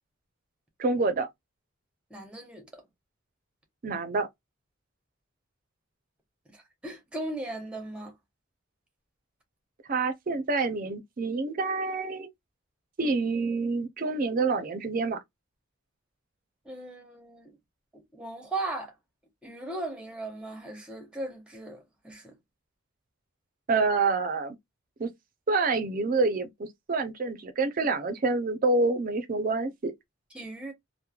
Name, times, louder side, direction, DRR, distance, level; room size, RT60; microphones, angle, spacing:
voice 1, 0.8-1.3 3.8-4.3 9.9-12.3 13.0-15.2 23.7-24.6 25.0-25.1 25.5-29.9, right 3 dB, 40° right, 0.5 m, -27 dB
voice 2, 2.1-2.8 6.5-8.1 16.6-17.6 17.9-18.9 19.4-22.3 30.3-30.7, right 2 dB, 5° right, 0.8 m, -38 dB
3.0 x 2.0 x 2.3 m
head